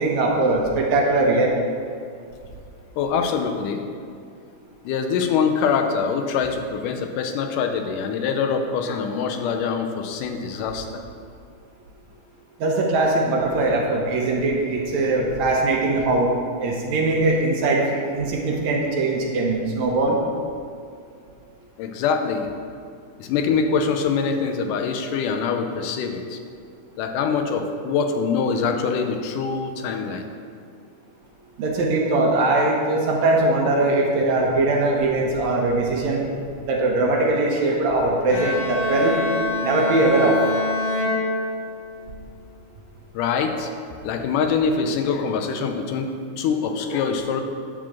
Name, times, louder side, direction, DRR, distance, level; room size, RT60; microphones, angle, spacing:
voice 1, 0.0-1.5 12.6-16.3 16.6-20.2 31.6-36.2 36.6-39.2 39.6-40.4, right 2 dB, 70° right, -1 dB, 2.0 m, -21 dB
voice 2, 3.0-3.8 4.9-10.9 21.8-22.5 23.2-26.4 27.0-30.2 43.1-43.7 44.0-47.4, left 5 dB, 90° left, 5 dB, 2.2 m, -24 dB
Bowed string instrument, 38.3-42.0, left 2 dB, 65° left, 3.0 m, -26 dB
9.8 x 3.8 x 7.3 m, 2.3 s
omnidirectional pair, 3.7 m